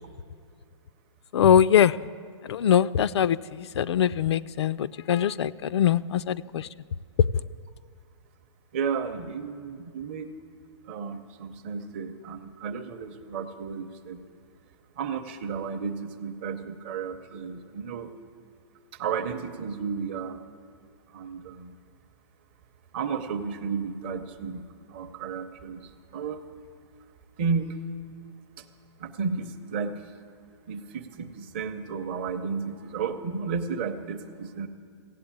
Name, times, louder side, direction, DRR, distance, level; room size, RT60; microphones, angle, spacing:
voice 1, 1.3-1.9 2.5-3.4 3.8-6.7, left 9 dB, 70° left, 18 dB, 0.4 m, -22 dB
voice 2, 8.7-10.3 10.9-14.2 15.0-18.1 19.0-20.4 21.1-21.7 22.9-26.4 27.4-27.8 29.0-30.0 30.7-34.7, right 5 dB, 25° right, 7 dB, 0.6 m, -33 dB
16.0 x 7.7 x 8.8 m, 2.2 s
hypercardioid pair, 180°, 15 cm